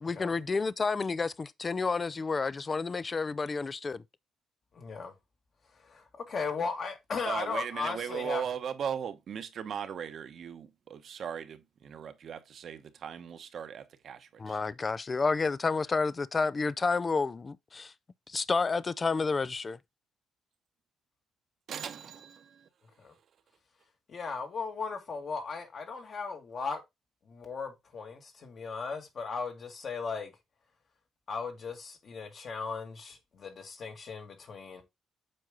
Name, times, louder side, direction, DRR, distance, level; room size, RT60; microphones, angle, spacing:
voice 1, 0.0-4.0 14.4-17.9 18.3-19.8, left 4 dB, 30° left, 0.4 m, -30 dB
voice 2, 4.7-5.1 5.7-8.6 23.0-23.1 24.1-26.8 27.3-30.3 31.3-34.8, left 5 dB, 50° left, 2.1 m, -37 dB
voice 3, 7.3-14.6 21.7-22.6, right 8 dB, 60° right, 1.0 m, -38 dB
7.7 x 4.6 x 3.8 m
cardioid pair, 90°, 0 cm